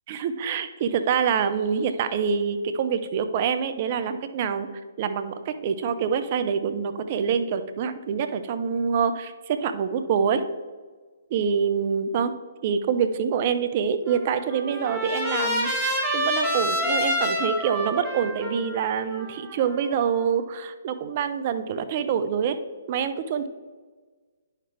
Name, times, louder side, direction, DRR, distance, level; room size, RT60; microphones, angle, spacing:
voice 1, 0.1-4.7 5.0-10.4 11.3-12.3 12.6-22.6 22.9-23.5, right 7 dB, 40° right, 10 dB, 0.6 m, -26 dB
Trumpet, 14.1-20.2, equal, 5° right, 2.0 m, -28 dB
9.9 x 5.8 x 3.4 m, 1.4 s
figure-of-eight pair, 135°, 0 cm